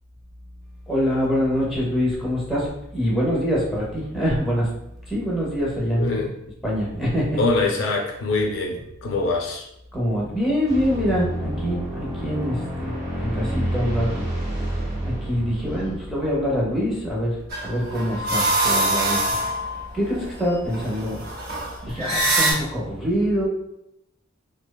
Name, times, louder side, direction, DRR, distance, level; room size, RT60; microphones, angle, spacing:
voice 1, 0.9-4.8 5.1-6.1 6.6-7.6 9.9-12.9 13.2-14.3 15.0-19.4 19.9-21.2 21.8-23.5, equal, ahead, -5 dB, 0.5 m, -24 dB
voice 2, 5.9-6.3 6.7-6.8 7.4-9.7, left 3 dB, 60° left, 1 dB, 0.4 m, -24 dB
sound 1, 10.6-17.3, equal, 30° right, 0.9 m, -29 dB
sound 2, 17.5-22.5, right 1 dB, 45° right, 0.5 m, -24 dB
2.6 x 2.1 x 2.2 m, 0.82 s
head